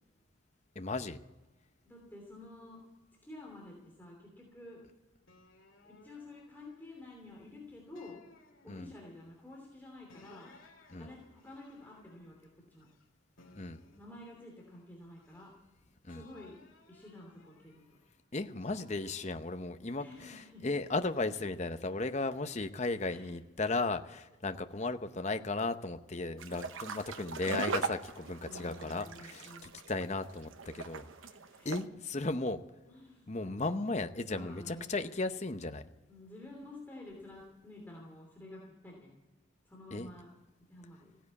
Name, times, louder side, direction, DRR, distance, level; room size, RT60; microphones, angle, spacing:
voice 1, 0.7-1.2 8.7-8.9 10.9-11.1 13.6-13.8 16.0-16.2 18.3-31.1 31.6-32.6 33.3-35.9 39.9-40.1, left 3 dB, 35° left, 9 dB, 0.8 m, -35 dB
voice 2, 1.8-2.8 3.2-4.8 5.8-8.2 8.6-10.5 10.9-12.4 12.7-12.9 14.0-15.5 16.1-16.6 16.9-17.8 20.0-20.7 23.0-23.3 28.4-29.7 31.4-31.9 32.9-33.5 34.3-35.0 36.1-39.1 39.6-40.3 40.7-41.2, left 1 dB, 10° left, -2 dB, 2.9 m, -50 dB
sound 1, 5.3-7.4 8.0-9.3 10.1-13.0 13.4-15.7 16.1-18.1 18.6-20.5 21.1-22.3, left 2 dB, 80° left, 2.5 m, -61 dB
sound 2, 26.4-31.8, right 4 dB, 80° right, 1.0 m, -39 dB
16.0 x 10.0 x 8.4 m, 1.2 s
head